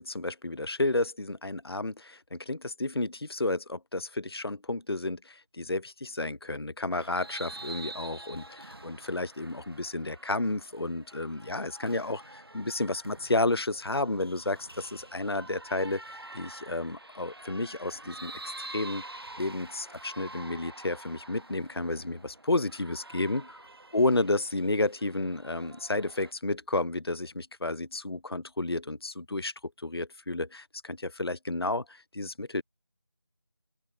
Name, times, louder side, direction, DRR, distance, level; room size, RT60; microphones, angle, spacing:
voice 1, 0.0-19.0 19.4-23.5 23.9-32.6, left 2 dB, 65° left, 0.7 m, -31 dB
sound 1, 6.9-26.3, right 2 dB, 60° right, 1.4 m, -47 dB
open air
figure-of-eight pair, 175°, 14 cm